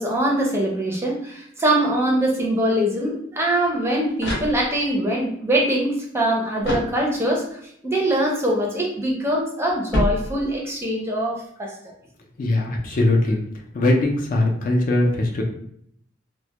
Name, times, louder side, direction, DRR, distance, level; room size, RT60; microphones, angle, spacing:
voice 1, 0.0-11.9, right 1 dB, 15° right, -1 dB, 0.5 m, -23 dB
sound 1, 3.8-5.0 6.6-7.5 9.9-10.8, equal, 75° left, 0.9 m, -28 dB
voice 2, 12.4-13.4 13.7-15.4, left 2 dB, 50° left, 1 dB, 0.4 m, -20 dB
2.1 x 2.0 x 2.8 m, 0.68 s
head